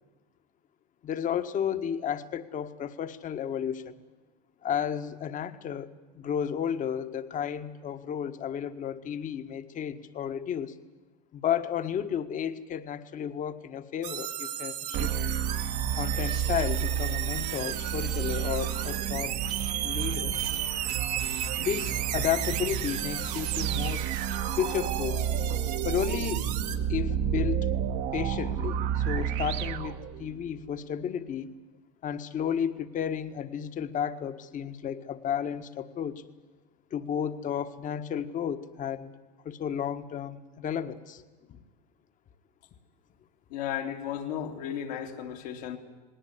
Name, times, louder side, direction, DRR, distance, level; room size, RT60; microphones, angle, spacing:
voice 1, 1.0-4.0 4.6-5.9 6.1-10.7 11.3-15.1 16.0-19.3 19.8-20.4 21.6-24.1 24.5-25.2 25.8-26.4 26.9-27.7 28.1-31.5 32.0-36.2 36.9-39.1 39.4-41.2 41.5-41.6, left 9 dB, 40° left, 1.6 m, -32 dB
sound 1, 14.0-26.8, right 12 dB, 75° right, 1.9 m, -35 dB
sound 2, 14.9-30.6, right 8 dB, 55° right, 1.5 m, -31 dB
voice 2, 43.5-45.8, left 9 dB, 70° left, 3.1 m, -34 dB
20.0 x 18.5 x 9.6 m
hypercardioid pair, 90°, 21 cm